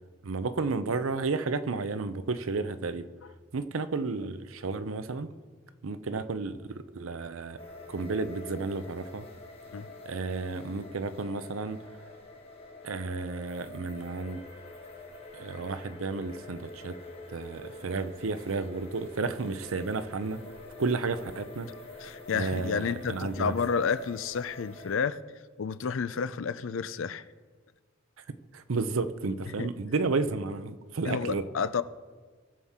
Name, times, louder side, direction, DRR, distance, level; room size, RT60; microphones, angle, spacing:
voice 1, 0.2-3.1 3.5-5.3 5.8-7.6 7.9-9.3 10.1-11.8 12.8-14.4 15.3-17.0 17.3-20.4 20.8-21.7 22.3-23.5 28.5-31.4, right 4 dB, 80° right, 12 dB, 0.6 m, -32 dB
sound 1, 7.6-25.0, left 2 dB, 30° left, 1.4 m, -47 dB
voice 2, 22.0-25.2 25.6-27.2 29.5-29.7 31.0-31.8, left 6 dB, 70° left, 15 dB, 0.5 m, -30 dB
19.5 x 7.2 x 3.6 m, 1.5 s
head